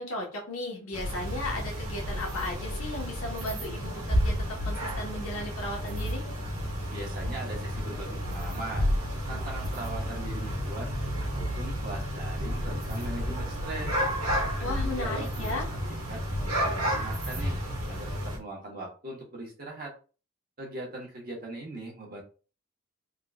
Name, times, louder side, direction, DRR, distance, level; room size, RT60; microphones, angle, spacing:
voice 1, 0.0-4.3 4.6-6.2 14.6-15.6, left 2 dB, 75° left, -1 dB, 1.3 m, -35 dB
sound 1, 0.9-18.4, equal, 80° right, 1.4 m, -31 dB
voice 2, 6.9-8.9 9.3-10.9 11.2-14.0 14.6-15.5 15.9-17.6 17.9-19.9 20.6-22.2, right 2 dB, 45° right, -3 dB, 1.4 m, -40 dB
3.8 x 3.1 x 2.4 m, 0.36 s
head